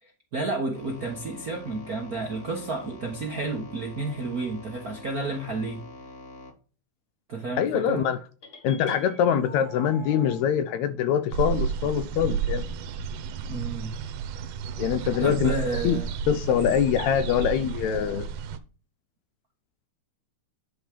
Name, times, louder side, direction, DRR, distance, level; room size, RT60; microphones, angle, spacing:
voice 1, 0.0-5.8 7.3-8.1 13.5-13.9 15.2-16.1, right 2 dB, 55° right, 1.0 m, -31 dB
sound 1, 0.7-6.5, left 2 dB, 55° left, 0.6 m, -45 dB
voice 2, 7.6-8.2 8.6-12.6 14.8-15.5 15.8-16.0 16.3-18.3, left 9 dB, 75° left, 1.8 m, -24 dB
sound 2, 8.4-10.4, left 2 dB, 35° left, 1.3 m, -43 dB
sound 3, 11.3-18.6, right 6 dB, 90° right, 2.4 m, -32 dB
10.5 x 4.0 x 5.1 m
omnidirectional pair, 3.6 m